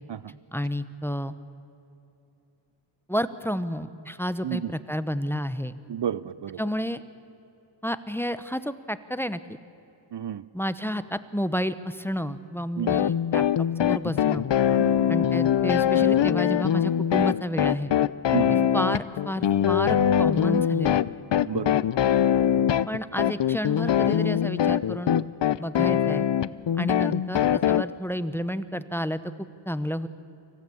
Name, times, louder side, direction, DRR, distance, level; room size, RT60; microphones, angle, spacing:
voice 1, 0.5-1.3 3.1-5.7 6.6-7.0 7.8-9.6 10.5-14.5 15.1-17.9 18.5-21.0 22.9-25.3 25.6-26.3 26.7-30.1, equal, 5° left, 13 dB, 0.9 m, -30 dB
voice 2, 5.9-6.6 10.1-10.5 12.8-12.9 14.8-15.1 18.3-18.7 21.5-21.9, right 10 dB, 60° right, 18 dB, 0.6 m, -31 dB
sound 1, 12.9-27.8, left 10 dB, 65° left, 0.6 m, -23 dB
25.0 x 16.0 x 8.6 m, 2.9 s
wide cardioid pair, 50°, 46 cm